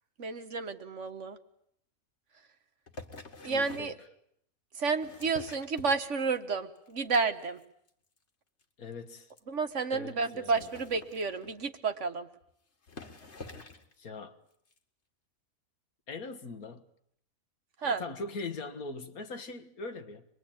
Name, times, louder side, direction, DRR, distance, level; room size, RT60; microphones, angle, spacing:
voice 1, 0.2-1.4 3.4-3.9 4.8-7.6 9.5-12.3 17.8-18.0, right 4 dB, 55° right, 1.6 m, -31 dB
sound 1, 2.9-4.0 4.8-6.4 6.8-7.2 7.4-7.6 7.9-8.0 8.2-8.3 8.6-8.7 9.3-9.4 10.3-11.7 12.4-12.5 12.8-13.9 14.7-14.8, left 3 dB, 50° left, 2.1 m, -47 dB
voice 2, 3.4-4.1 8.8-9.3 9.9-10.7 14.0-14.4 16.1-16.9 17.8-20.3, left 3 dB, 75° left, 2.0 m, -41 dB
25.5 x 21.5 x 8.8 m
omnidirectional pair, 1.5 m